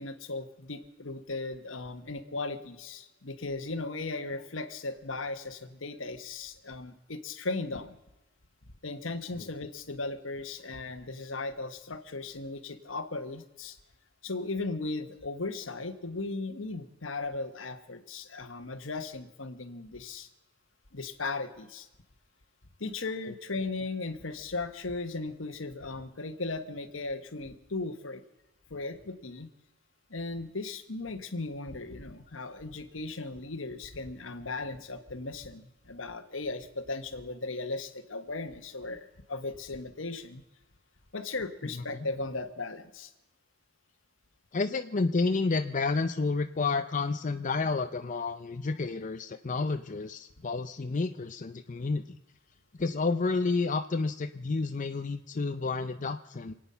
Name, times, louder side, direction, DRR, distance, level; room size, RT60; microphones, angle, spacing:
voice 1, 0.0-7.9 8.8-13.8 14.2-20.3 20.9-21.9 22.8-28.2 28.7-29.5 30.1-40.4 41.1-43.1, left 3 dB, 75° left, 9 dB, 1.3 m, -37 dB
voice 2, 41.7-42.1 44.5-52.2 52.7-56.5, left 3 dB, 40° left, 7 dB, 0.6 m, -30 dB
27.5 x 9.2 x 5.6 m, 0.99 s
head